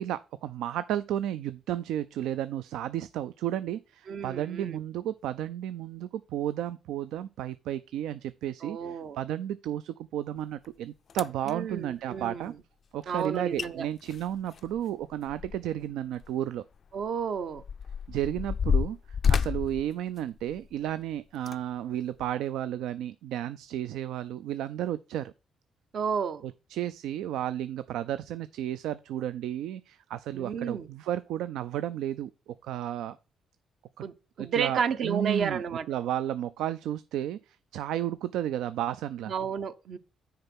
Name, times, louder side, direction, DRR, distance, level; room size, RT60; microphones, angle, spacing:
voice 1, 0.0-12.5 12.9-16.6 18.1-25.3 26.4-33.2 34.4-39.3, right 11 dB, 85° right, 0.3 m, -33 dB
voice 2, 4.1-4.8 8.6-9.2 11.4-12.5 13.1-13.8 16.9-17.6 25.9-26.5 30.3-30.9 34.0-35.9 39.3-40.0, right 7 dB, 60° right, 0.7 m, -32 dB
sound 1, 10.6-10.7 11.1-11.5 13.2-13.3 13.6-13.7 14.0-15.8 16.2-16.3 17.0-20.8 21.3-21.6 22.2-22.3, left 6 dB, 50° left, 0.3 m, -30 dB
6.5 x 4.6 x 5.9 m
cardioid pair, 90°, 0 cm